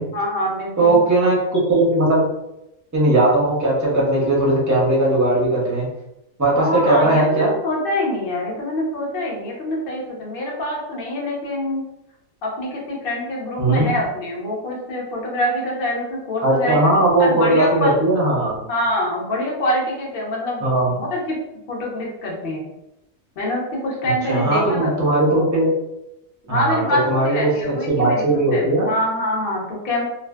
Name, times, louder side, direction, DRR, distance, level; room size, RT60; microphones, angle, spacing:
voice 1, 0.1-1.0 6.5-11.8 12.4-16.8 17.2-17.9 18.7-21.4 21.7-22.7 23.4-24.9 25.2-25.4 26.5-28.2 28.5-30.0, left 1 dB, 50° left, -3 dB, 0.8 m, -25 dB
voice 2, 0.8-2.3 2.9-5.9 6.4-7.5 13.6-13.9 16.4-18.6 20.6-20.9 24.3-25.7 26.5-27.5 27.9-28.9, right 2 dB, 20° right, -5 dB, 0.4 m, -18 dB
2.5 x 2.3 x 2.2 m, 0.88 s
omnidirectional pair, 1.4 m